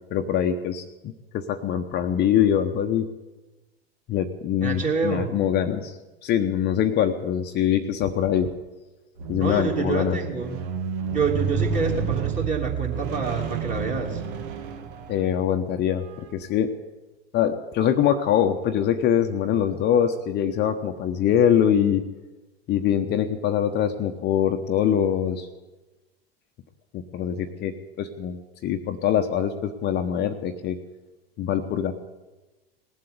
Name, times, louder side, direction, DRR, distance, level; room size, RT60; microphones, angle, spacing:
voice 1, 0.1-3.1 4.1-6.0 6.2-8.5 9.3-10.2 15.1-16.0 16.3-16.7 17.3-22.0 22.7-25.5 26.9-30.8 31.4-31.9, left 9 dB, 35° left, 6 dB, 1.0 m, -23 dB
voice 2, 4.6-5.3 9.4-10.6 11.1-14.2, right 4 dB, 25° right, 1 dB, 3.0 m, -27 dB
Squeak, 9.2-15.5 16.3-16.4, right 6 dB, 60° right, 1.7 m, -30 dB
19.0 x 7.7 x 9.4 m, 1.1 s
hypercardioid pair, 95°, 31 cm